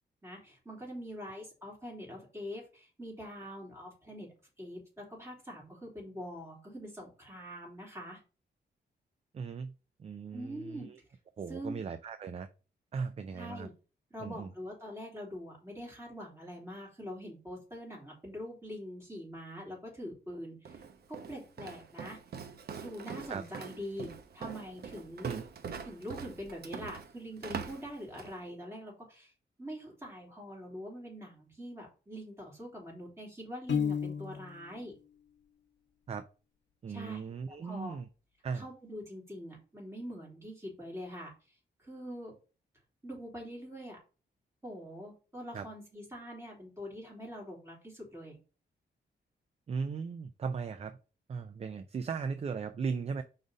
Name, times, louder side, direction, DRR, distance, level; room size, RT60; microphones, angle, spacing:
voice 1, 0.2-4.3 4.6-8.2 10.3-10.9 11.5-11.8 13.3-13.7 14.1-20.8 21.1-22.2 22.8-25.3 25.8-29.3 29.6-34.9 36.9-37.2 37.6-37.9 38.5-41.3 41.8-42.3 43.0-44.0 44.6-48.4, equal, 15° right, -3 dB, 3.4 m, -44 dB
voice 2, 9.3-9.7 10.0-11.0 11.4-12.5 12.9-13.7 14.2-14.5 23.3-23.4 25.2-25.4 36.1-36.3 36.8-38.1 38.4-38.7 45.5-45.7 49.7-51.0 51.3-53.2, right 5 dB, 35° right, 11 dB, 0.4 m, -37 dB
Walk footsteps, 20.6-28.4, right 6 dB, 60° right, 0.8 m, -43 dB
Piano, 33.7-34.7, left 7 dB, 80° left, 0.8 m, -32 dB
5.0 x 4.1 x 5.1 m, 0.35 s
wide cardioid pair, 145°, 18 cm